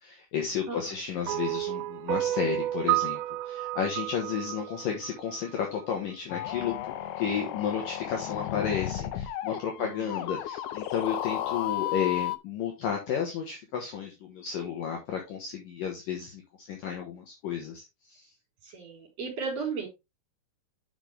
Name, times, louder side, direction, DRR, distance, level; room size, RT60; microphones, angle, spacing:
voice 1, 0.0-18.3, left 7 dB, 60° left, 1 dB, 2.8 m, -32 dB
voice 2, 0.7-1.0 9.8-10.4 18.6-19.9, right 5 dB, 40° right, 1 dB, 5.0 m, -36 dB
sound 1, 1.3-5.6, right 16 dB, 85° right, 2.9 m, -31 dB
sound 2, 6.3-12.4, left 13 dB, 80° left, 2.3 m, -34 dB
9.5 x 6.0 x 3.4 m, 0.23 s
omnidirectional pair, 5.0 m